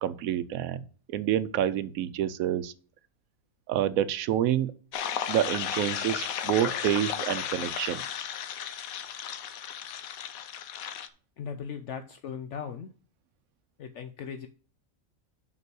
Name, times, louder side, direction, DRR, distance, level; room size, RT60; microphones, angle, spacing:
voice 1, 0.0-0.8 1.1-2.7 3.7-4.7 5.3-8.0, right 11 dB, 80° right, 1.0 m, -28 dB
sound 1, 4.9-11.1, left 9 dB, 80° left, 1.1 m, -34 dB
voice 2, 11.4-12.9 13.8-14.5, left 7 dB, 65° left, 0.9 m, -38 dB
5.5 x 5.4 x 6.0 m
omnidirectional pair, 1.4 m